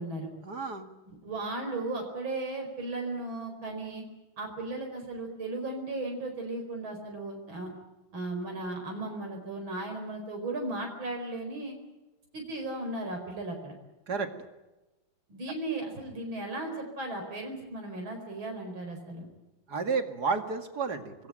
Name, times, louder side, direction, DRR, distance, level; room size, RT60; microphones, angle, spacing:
voice 1, 0.4-0.9 14.1-14.3 19.7-21.3, right 4 dB, 55° right, 7 dB, 2.6 m, -31 dB
voice 2, 1.1-4.0 4.4-7.7 8.1-11.8 12.3-13.7 15.3-19.3, right 2 dB, 80° right, 2 dB, 5.3 m, -36 dB
26.5 x 21.0 x 8.9 m, 1.1 s
omnidirectional pair, 2.1 m